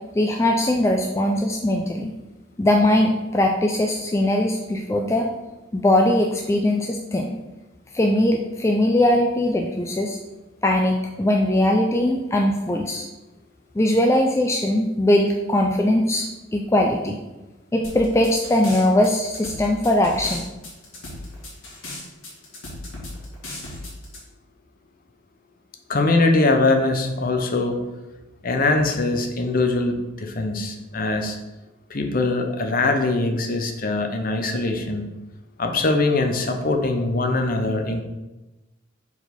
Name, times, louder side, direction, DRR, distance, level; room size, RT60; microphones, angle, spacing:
voice 1, 0.1-2.1 2.6-5.3 5.7-7.4 7.9-10.2 10.6-13.1 13.8-16.3 16.5-17.2 17.7-20.4, left 1 dB, 15° left, 1 dB, 0.3 m, -20 dB
sound 1, 17.8-24.2, left 1 dB, 85° left, 2.1 m, -36 dB
voice 2, 25.9-27.8 28.4-29.9 30.2-31.4 31.9-35.0 35.6-38.0, left 2 dB, 45° left, 4 dB, 0.7 m, -22 dB
4.8 x 4.1 x 5.2 m, 1.1 s
head